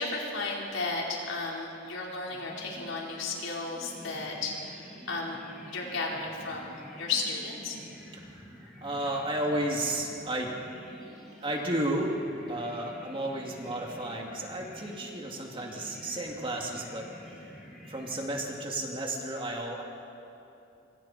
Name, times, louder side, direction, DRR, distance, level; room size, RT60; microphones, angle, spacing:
voice 1, 0.0-5.4 5.7-7.8, left 3 dB, 85° left, -3 dB, 4.4 m, -34 dB
sound 1, 2.3-18.9, equal, ahead, 6.8 m, -49 dB
voice 2, 8.8-10.5 11.4-12.2 12.5-17.4 17.9-19.8, right 1 dB, 25° right, 0 dB, 2.6 m, -32 dB
25.5 x 25.0 x 4.4 m, 2.7 s
head